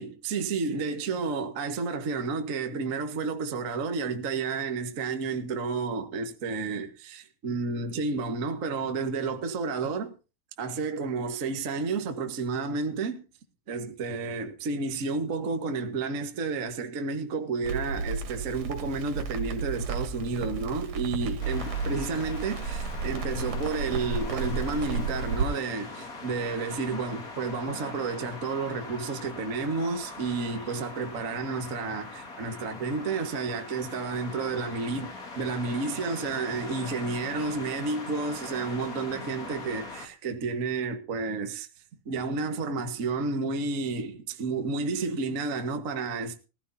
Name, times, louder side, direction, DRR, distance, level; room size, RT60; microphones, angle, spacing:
voice 1, 0.0-10.1 10.6-13.2 13.7-41.7 42.0-46.4, right 4 dB, 40° right, 1.3 m, -31 dB
Crackle, 17.6-25.5, right 4 dB, 70° right, 3.6 m, -33 dB
sound 1, 21.4-40.1, left 3 dB, 30° left, 2.3 m, -41 dB
19.5 x 14.5 x 2.8 m
omnidirectional pair, 3.7 m